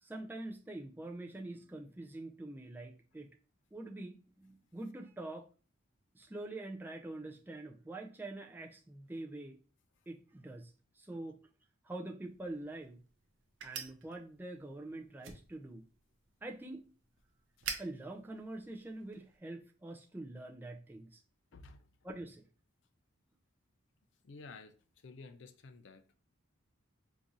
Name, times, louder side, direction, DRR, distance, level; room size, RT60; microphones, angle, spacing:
voice 1, 0.0-3.3 3.7-5.5 6.1-9.6 10.1-10.7 11.0-11.4 11.9-13.0 13.6-15.8 16.4-16.9 17.8-21.2 22.0-22.4, right 2 dB, 10° right, 0.3 m, -45 dB
sound 1, 12.2-19.4, right 6 dB, 65° right, 0.6 m, -49 dB
voice 2, 21.5-21.9 24.2-24.8 25.0-26.0, left 3 dB, 60° left, 0.4 m, -52 dB
3.7 x 2.6 x 2.9 m
head